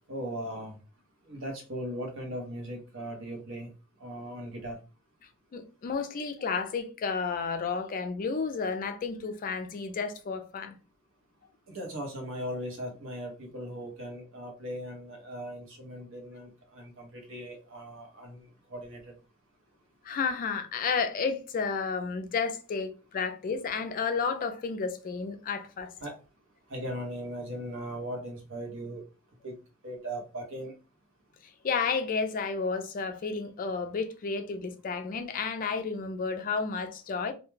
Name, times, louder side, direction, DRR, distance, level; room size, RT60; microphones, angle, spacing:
voice 1, 0.1-0.8 1.3-3.7 4.0-4.8 11.7-19.1 26.0-26.2 26.7-29.0 29.4-29.5 29.8-30.7, equal, 60° right, 0.8 m, -38 dB
voice 2, 5.5-10.8 20.0-25.9 31.6-37.3, left 5 dB, 40° left, 0.3 m, -31 dB
2.3 x 2.2 x 3.1 m
head